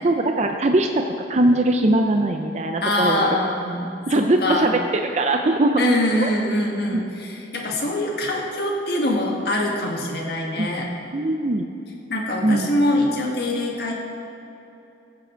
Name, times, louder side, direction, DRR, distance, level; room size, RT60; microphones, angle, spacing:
voice 1, 0.0-1.0 1.3-3.4 4.1-5.8 6.2-6.3 6.9-7.0 10.6-10.7 11.1-11.7 12.4-12.7, right 1 dB, 40° right, 5 dB, 0.5 m, -20 dB
voice 2, 2.8-4.7 5.8-10.9 12.1-13.9, left 1 dB, 65° left, -1 dB, 1.8 m, -24 dB
15.0 x 7.7 x 4.5 m, 2.8 s
head